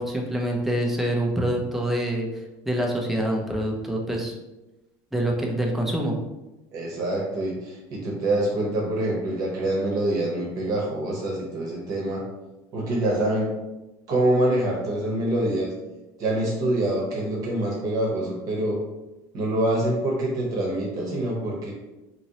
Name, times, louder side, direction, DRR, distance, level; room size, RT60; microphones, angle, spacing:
voice 1, 0.0-2.3 2.6-4.3 5.1-6.2, right 1 dB, 5° right, -1 dB, 0.5 m, -25 dB
voice 2, 6.7-12.2 12.7-13.5 14.1-15.7 16.2-18.8 19.3-21.7, right 1 dB, 45° right, -2 dB, 0.8 m, -25 dB
2.9 x 2.8 x 2.8 m, 1.0 s
cardioid pair, 150°, 8 cm